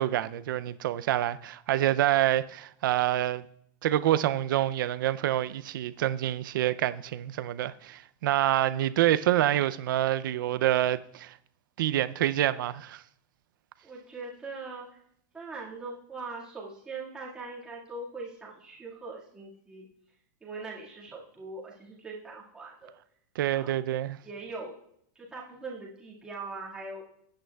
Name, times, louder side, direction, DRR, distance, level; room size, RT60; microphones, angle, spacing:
voice 1, 0.0-3.5 3.8-11.3 11.8-13.0 23.4-24.2, right 13 dB, 80° right, 0.5 m, -27 dB
voice 2, 13.8-14.9 15.3-19.9 20.4-22.9 23.5-23.8 24.2-24.7 25.2-27.0, right 3 dB, 5° right, 1.8 m, -41 dB
15.5 x 8.9 x 2.3 m
supercardioid pair, 175°, 11 cm